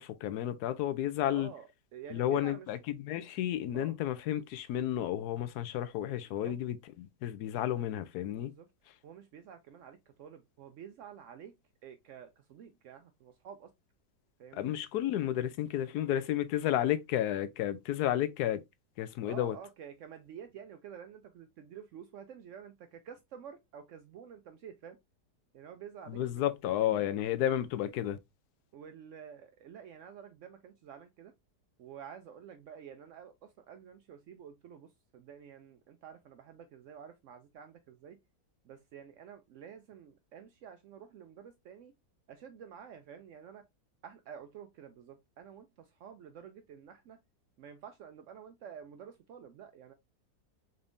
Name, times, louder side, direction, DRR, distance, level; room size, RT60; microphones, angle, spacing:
voice 1, 0.0-1.5 2.1-8.5 14.5-18.6 19.0-19.6 26.1-28.2, left 12 dB, 70° left, 1.0 m, -32 dB
voice 2, 1.3-2.7 3.7-4.0 6.4-6.5 8.4-8.7 9.0-11.5 11.8-13.7 14.4-14.7 19.3-25.0 25.5-26.2 26.8-27.1 28.7-31.3 31.8-38.2 38.6-41.9 42.3-43.6 44.0-47.2 47.6-49.9, right 8 dB, 90° right, 0.6 m, -50 dB
4.0 x 3.4 x 2.5 m
omnidirectional pair, 1.9 m